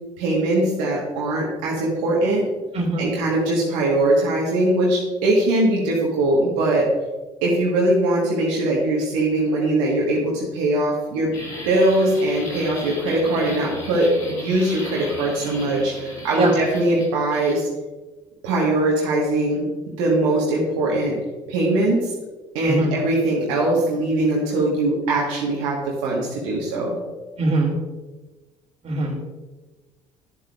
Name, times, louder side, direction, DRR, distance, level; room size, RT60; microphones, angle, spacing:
voice 1, 0.2-2.5 3.0-6.9 7.4-11.3 11.6-17.7 18.4-19.7 20.0-21.2 21.5-22.1 22.5-27.0, right 1 dB, 75° right, -3 dB, 1.4 m, -21 dB
voice 2, 2.7-3.1 16.4-16.5 22.6-22.9 27.4-27.7 28.8-29.1, right 2 dB, 40° right, -1 dB, 2.6 m, -21 dB
sound 1, 11.3-17.6, left 1 dB, 90° left, 2.7 m, -36 dB
11.5 x 7.5 x 2.4 m, 1.2 s
hypercardioid pair, 60°, 16 cm